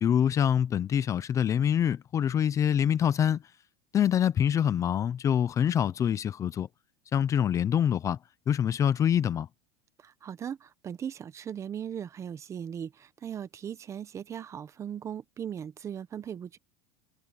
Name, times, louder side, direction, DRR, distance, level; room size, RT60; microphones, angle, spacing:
voice 1, 0.0-3.4 3.9-6.7 7.1-8.2 8.5-9.5, left 9 dB, 25° left, 0.6 m, -25 dB
voice 2, 10.0-16.6, right 8 dB, 20° right, 0.8 m, -38 dB
supercardioid pair, 155°, 14 cm